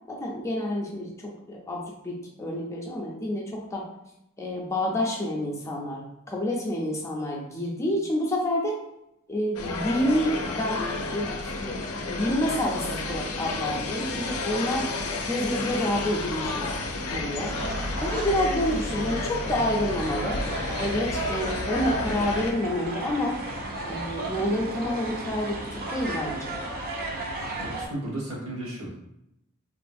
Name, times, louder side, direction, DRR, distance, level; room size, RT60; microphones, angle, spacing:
voice 1, 0.1-3.8 4.4-8.8 9.3-14.9 15.3-16.7 16.9-17.6 18.0-20.4 20.8-23.4 23.9-26.6, left 1 dB, 15° left, -3 dB, 0.5 m, -28 dB
sound 1, 9.5-22.5, left 3 dB, 80° left, 0.4 m, -31 dB
sound 2, 17.4-27.9, right 2 dB, 45° right, 0.6 m, -34 dB
voice 2, 27.6-29.0, right 1 dB, 75° right, -5 dB, 1.2 m, -34 dB
3.0 x 2.5 x 2.5 m, 0.82 s
head